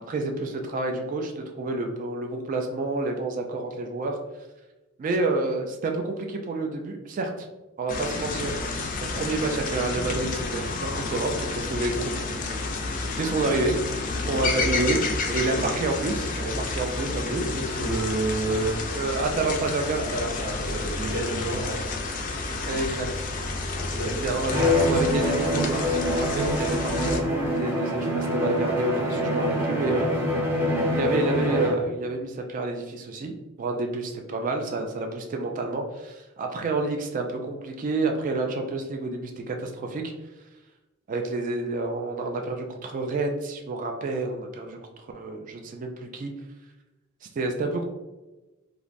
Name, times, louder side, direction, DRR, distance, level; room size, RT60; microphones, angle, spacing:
voice 1, 0.0-4.2 5.0-7.5 7.8-12.1 13.1-13.8 14.3-15.0 15.3-17.4 18.9-20.0 21.5-21.7 22.6-23.3 24.1-30.1 30.9-40.1 41.1-46.3 47.2-47.8, right 3 dB, 40° right, 3 dB, 0.3 m, -29 dB
sound 1, 7.9-27.2, left 3 dB, 40° left, 0.3 m, -30 dB
voice 2, 17.5-18.8 20.1-21.8 23.8-24.4, right 2 dB, 60° right, -6 dB, 1.3 m, -29 dB
Bowed string instrument, 24.5-31.9, left 1 dB, 10° right, 0.7 m, -25 dB
3.1 x 2.5 x 2.4 m, 1.1 s
head